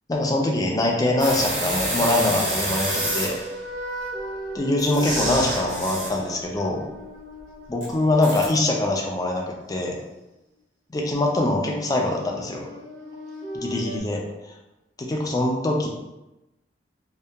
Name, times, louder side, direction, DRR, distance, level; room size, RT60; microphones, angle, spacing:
voice 1, 0.1-3.4 4.5-6.8 7.7-10.0 10.9-12.6 13.5-14.2 15.1-15.9, left 2 dB, 20° left, 0 dB, 0.3 m, -23 dB
sound 1, 1.0-10.0 11.5-14.0, right 1 dB, 85° right, 0.7 m, -38 dB
sound 2, 1.2-3.5 4.8-6.2 7.8-7.9 8.2-8.5, right 1 dB, 40° right, 0.7 m, -28 dB
2.8 x 2.3 x 2.2 m, 0.98 s
head